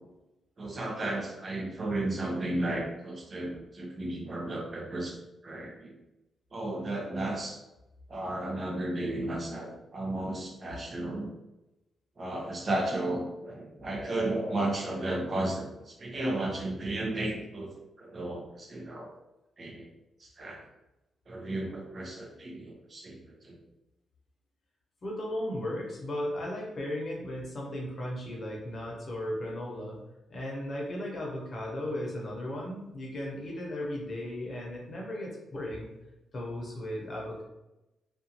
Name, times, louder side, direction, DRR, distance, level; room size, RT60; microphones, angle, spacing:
voice 1, 0.6-5.2 5.4-5.9 6.5-7.6 8.1-11.3 12.2-17.7 18.0-19.1 19.6-19.9 20.2-20.6 21.3-23.6, right 1 dB, 40° right, 0 dB, 0.6 m, -34 dB
voice 2, 25.0-30.0 30.3-35.9 36.3-37.4, left 1 dB, 45° left, -3 dB, 0.8 m, -36 dB
2.5 x 2.4 x 2.8 m, 0.96 s
cardioid pair, 105°, 0 cm